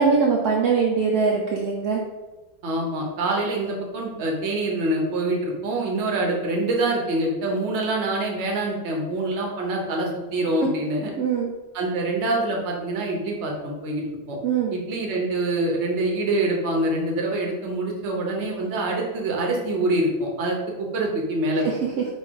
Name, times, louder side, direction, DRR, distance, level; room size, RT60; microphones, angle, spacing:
voice 1, 0.0-2.0 11.2-11.5 14.4-14.8 21.6-21.8, right 5 dB, 80° right, -1 dB, 0.8 m, -22 dB
voice 2, 2.6-11.1 11.7-14.4 14.7-21.7, right 2 dB, 55° right, 0 dB, 0.8 m, -25 dB
4.6 x 2.3 x 4.5 m, 1.2 s
omnidirectional pair, 2.1 m